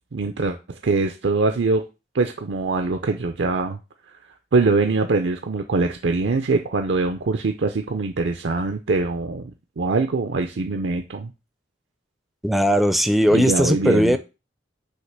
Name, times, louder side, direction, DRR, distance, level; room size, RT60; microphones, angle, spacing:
voice 1, 0.1-1.9 2.1-3.8 4.5-11.3 13.3-14.2, right 3 dB, 65° right, 0.5 m, -23 dB
voice 2, 12.4-14.2, equal, ahead, 0.4 m, -18 dB
6.4 x 2.9 x 5.8 m
head